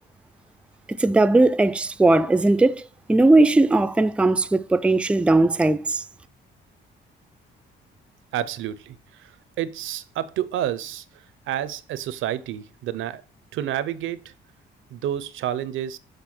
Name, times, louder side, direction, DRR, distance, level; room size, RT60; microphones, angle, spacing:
voice 1, 1.0-2.8 3.1-6.0, right 2 dB, 5° right, 0.4 m, -18 dB
voice 2, 8.3-13.2 13.5-14.3 14.9-16.0, right 11 dB, 80° right, 0.7 m, -30 dB
6.7 x 3.4 x 6.0 m
cardioid pair, 90°, 20 cm